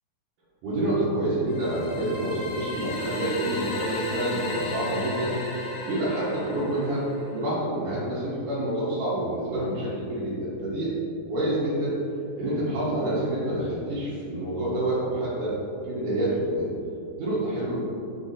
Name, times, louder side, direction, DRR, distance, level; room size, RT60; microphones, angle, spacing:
voice 1, 0.6-5.4 5.8-10.9 11.3-11.9 12.4-15.5 15.9-16.7 17.2-17.7, right 1 dB, 60° right, -11 dB, 2.4 m, -27 dB
sound 1, 1.5-7.4, left 2 dB, 75° left, 2.0 m, -35 dB
6.9 x 4.8 x 4.2 m, 2.6 s
omnidirectional pair, 4.8 m